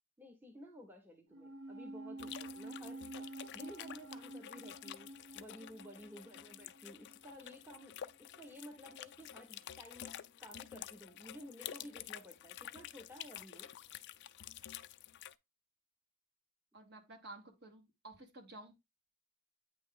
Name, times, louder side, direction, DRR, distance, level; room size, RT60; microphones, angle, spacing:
voice 1, 0.2-3.3 3.5-10.1 10.4-13.7, equal, 10° right, 0.7 m, -54 dB
sound 1, 1.3-7.9 8.1-8.2, right 2 dB, 85° right, 0.8 m, -50 dB
sound 2, 2.2-15.3, left 11 dB, 55° left, 0.3 m, -50 dB
voice 2, 16.7-18.7, right 2 dB, 50° right, 1.3 m, -53 dB
8.6 x 3.0 x 3.6 m
head